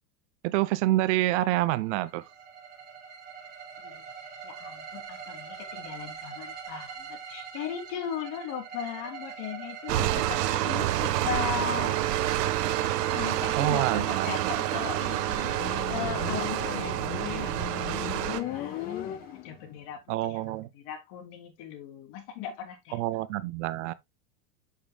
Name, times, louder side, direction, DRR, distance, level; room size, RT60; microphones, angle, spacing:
voice 1, 0.4-2.2 13.5-14.5 20.1-20.7 22.9-23.9, right 16 dB, 50° right, 0.6 m, -27 dB
sound 1, 1.8-19.7, right 6 dB, 20° right, 5.3 m, -43 dB
voice 2, 4.4-12.3 13.1-20.4 20.7-23.0, left 9 dB, 50° left, 3.1 m, -38 dB
sound 2, 9.9-18.4, right 13 dB, 80° right, 1.2 m, -28 dB
Motorcycle, 15.4-19.8, left 13 dB, 20° left, 0.4 m, -37 dB
8.6 x 7.2 x 2.2 m
supercardioid pair, 145°, 48 cm